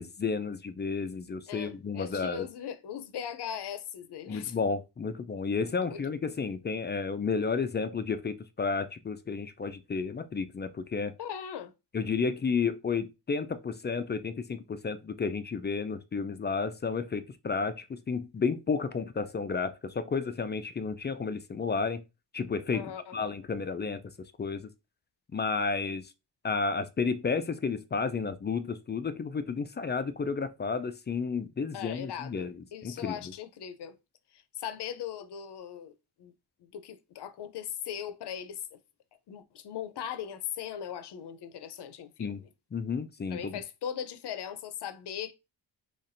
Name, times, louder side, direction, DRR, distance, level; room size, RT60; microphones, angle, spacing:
voice 1, 0.0-2.5 4.3-11.1 11.9-22.0 22.3-24.0 24.4-24.7 25.3-26.1 26.4-32.5 32.8-33.2 42.2-42.4 42.7-43.6, left 5 dB, 25° left, 0.4 m, -32 dB
voice 2, 1.5-4.5 5.8-6.0 11.2-11.7 22.7-23.2 31.7-34.0 34.3-35.9 36.2-36.3 36.6-38.6 39.3-42.3 43.3-45.3, left 9 dB, 60° left, 0.7 m, -39 dB
4.2 x 3.1 x 2.6 m
cardioid pair, 70°, 46 cm